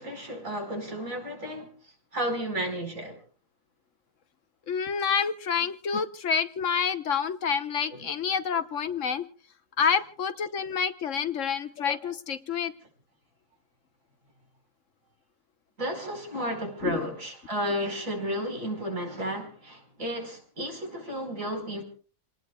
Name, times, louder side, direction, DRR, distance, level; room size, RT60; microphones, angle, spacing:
voice 1, 0.0-3.2 7.9-8.1 15.8-21.8, equal, 75° right, 5.3 m, -33 dB
voice 2, 4.7-9.3 9.8-12.7 16.8-17.1, left 6 dB, 70° left, 1.3 m, -28 dB
29.0 x 19.0 x 2.3 m
omnidirectional pair, 1.4 m